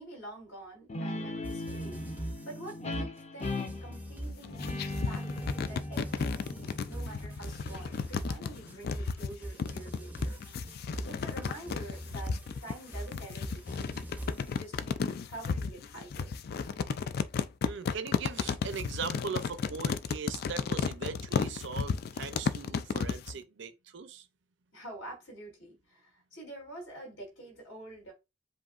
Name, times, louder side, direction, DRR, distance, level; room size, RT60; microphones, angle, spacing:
voice 1, 0.0-2.0 2.4-5.3 5.6-10.4 11.1-13.9 14.5-15.0 15.3-16.3 24.7-28.1, right 1 dB, 75° left, 3.1 m, -47 dB
Guitar, 0.9-8.1, left 1 dB, 35° left, 0.7 m, -39 dB
sound 1, 1.4-14.7, right 1 dB, 10° right, 0.6 m, -42 dB
sound 2, 4.2-23.3, left 5 dB, 50° left, 0.3 m, -33 dB
voice 2, 17.6-24.3, right 5 dB, 65° right, 0.6 m, -40 dB
7.5 x 2.6 x 2.4 m
head